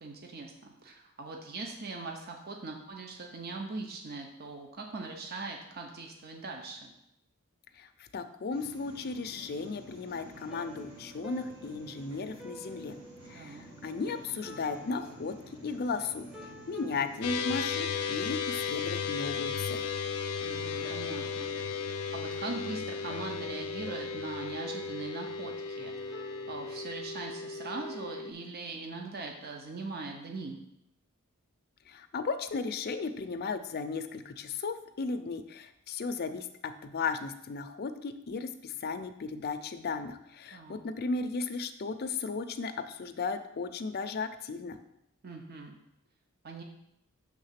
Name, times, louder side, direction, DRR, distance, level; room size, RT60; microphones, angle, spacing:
voice 1, 0.0-6.9 13.3-13.7 20.4-21.6 22.1-30.6 40.5-40.8 45.2-45.8 46.4-46.6, right 3 dB, 45° right, 2 dB, 0.7 m, -41 dB
voice 2, 7.8-13.0 13.3-16.3 16.7-19.8 31.9-44.8, left 4 dB, 45° left, 8 dB, 0.5 m, -35 dB
sound 1, 8.5-17.5, right 2 dB, 70° right, 1.7 m, -51 dB
sound 2, 9.4-26.8, right 1 dB, 5° right, 0.7 m, -51 dB
sound 3, 17.2-28.3, left 6 dB, 85° left, 0.6 m, -35 dB
6.4 x 3.6 x 5.7 m, 0.80 s
head